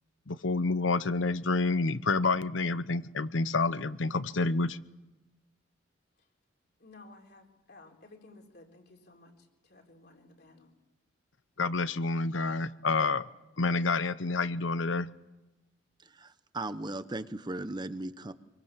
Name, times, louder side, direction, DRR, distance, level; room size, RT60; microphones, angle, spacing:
voice 1, 0.3-4.8 11.6-13.3 13.6-15.1, left 3 dB, 85° left, 14 dB, 0.9 m, -28 dB
voice 2, 6.8-10.7, left 2 dB, 55° left, 2 dB, 3.9 m, -55 dB
voice 3, 16.0-18.3, right 2 dB, 20° right, 12 dB, 1.0 m, -37 dB
25.5 x 24.0 x 7.5 m, 1.1 s
head